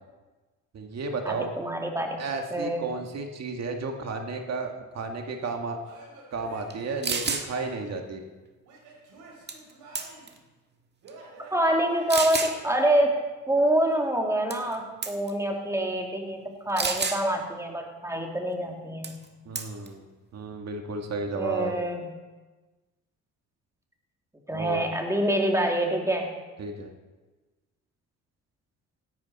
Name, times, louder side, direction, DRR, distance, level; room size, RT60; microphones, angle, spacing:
voice 1, 0.7-1.5 2.2-5.8 6.3-8.2 19.5-20.0 20.3-21.7 24.5-24.8 26.6-26.9, right 4 dB, 60° right, 4 dB, 1.8 m, -33 dB
voice 2, 1.3-2.2 2.5-2.9 11.5-13.2 13.5-19.2 21.3-22.2 24.5-26.3, right 1 dB, 10° right, 1 dB, 2.5 m, -26 dB
Male speech man speaking / Yell / Laughter, 5.8-8.0 8.6-10.4 11.0-12.9, right 2 dB, 90° right, 4.7 m, -49 dB
sound 1, 6.7-6.8 7.0-7.5 9.5-9.7 10.0-10.4 11.1-11.2 12.1-12.5 14.5-14.8 15.0-15.3 16.8-17.2 19.0-19.2 19.6-19.9, right 4 dB, 35° right, 1.6 m, -29 dB
16.0 x 12.0 x 4.2 m, 1.2 s
cardioid pair, 90°, 30 cm